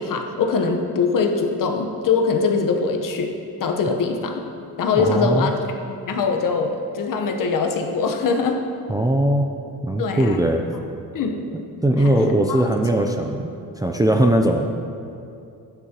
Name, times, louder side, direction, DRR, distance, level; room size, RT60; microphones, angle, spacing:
voice 1, 0.0-3.3 3.6-4.4 4.8-8.6 10.0-10.4 11.1-11.5 12.0-12.7, left 4 dB, 55° left, 4 dB, 1.1 m, -22 dB
voice 2, 5.0-5.5 8.9-9.5 9.8-10.7 11.8-13.4 13.8-14.7, right 1 dB, 10° right, 3 dB, 0.4 m, -19 dB
12.0 x 9.2 x 2.9 m, 2.6 s
cardioid pair, 110°, 38 cm